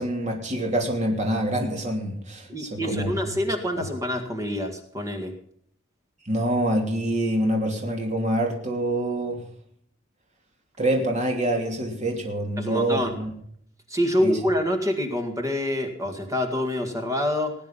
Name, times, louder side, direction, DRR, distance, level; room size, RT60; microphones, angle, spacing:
voice 1, 0.0-3.1 6.2-9.4 10.8-13.3 14.2-14.3, right 1 dB, 35° right, 1 dB, 3.0 m, -26 dB
voice 2, 2.5-5.3 12.6-13.2 13.9-17.5, left 1 dB, 15° right, 5 dB, 1.9 m, -26 dB
19.5 x 9.3 x 5.6 m, 0.65 s
head